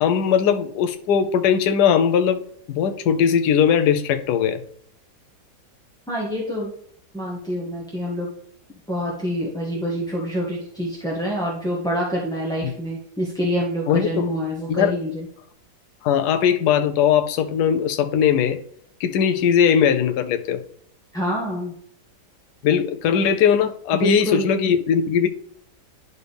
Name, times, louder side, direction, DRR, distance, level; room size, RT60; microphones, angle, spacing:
voice 1, 0.0-2.4 2.7-4.6 13.9-14.3 14.7-14.9 16.0-18.6 19.0-20.6 22.6-25.3, left 8 dB, 75° left, 1.2 m, -19 dB
voice 2, 6.1-6.7 7.1-8.3 8.9-15.3 21.1-21.7 23.9-24.5, equal, 5° left, 0.9 m, -26 dB
11.0 x 4.1 x 3.4 m
omnidirectional pair, 1.9 m